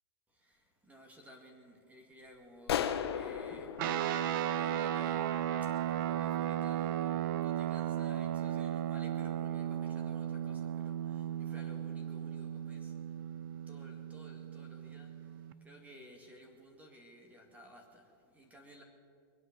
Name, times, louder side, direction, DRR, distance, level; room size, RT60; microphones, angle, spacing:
voice 1, 0.3-3.9 4.2-13.2 13.7-18.8, equal, 10° right, 2 dB, 2.0 m, -56 dB
sound 1, 2.7-5.3, left 9 dB, 80° left, 1.2 m, -36 dB
sound 2, 3.8-15.5, right 10 dB, 55° right, 0.7 m, -35 dB
22.0 x 9.1 x 6.7 m, 2.3 s
hypercardioid pair, 140°, 13 cm